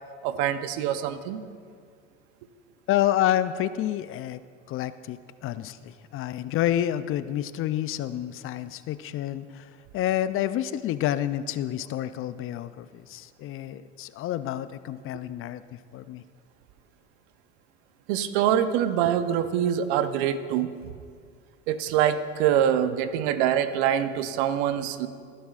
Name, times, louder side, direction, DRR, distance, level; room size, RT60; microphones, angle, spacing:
voice 1, 0.2-1.4 18.1-20.7 21.7-25.1, right 10 dB, 65° right, 11 dB, 0.8 m, -24 dB
voice 2, 2.9-4.4 4.7-16.2, left 12 dB, 40° left, 14 dB, 0.4 m, -29 dB
18.5 x 11.0 x 2.5 m, 2.1 s
hypercardioid pair, 90°, 35 cm